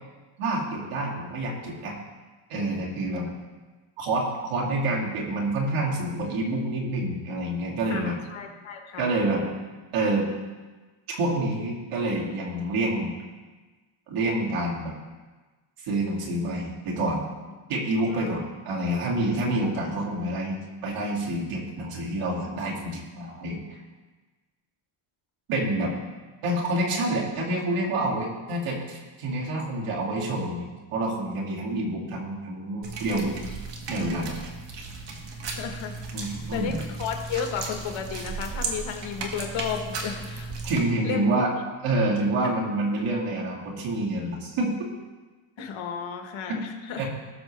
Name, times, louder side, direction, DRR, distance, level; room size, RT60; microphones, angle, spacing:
voice 1, 0.4-2.0 2.5-3.3 4.0-8.2 9.0-9.5 9.9-10.3 11.1-13.1 14.1-14.9 15.8-17.3 17.7-23.6 25.5-25.9 26.4-33.4 33.9-34.5 36.1-36.8 40.6-41.5 41.8-44.7 46.5-46.6 47.0-47.1, right 1 dB, 80° right, -3 dB, 2.6 m, -27 dB
voice 2, 7.9-9.1 18.1-18.4 35.5-35.9 36.5-40.5 41.0-41.3 42.4-42.5 45.6-47.0, left 7 dB, 65° left, 4 dB, 1.5 m, -33 dB
sound 1, 32.8-40.8, right 3 dB, 55° right, 1.7 m, -35 dB
18.0 x 6.7 x 3.3 m, 1.3 s
cardioid pair, 125°, 50 cm